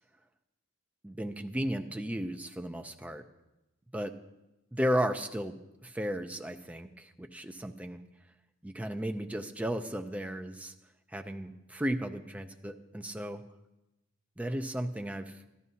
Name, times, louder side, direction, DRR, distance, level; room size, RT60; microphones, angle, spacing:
voice 1, 1.0-3.2 3.9-4.1 4.7-5.5 5.8-8.0 8.6-10.7 11.1-13.4 14.4-15.4, equal, 5° right, 7 dB, 0.5 m, -34 dB
14.0 x 12.5 x 2.8 m, 0.96 s
head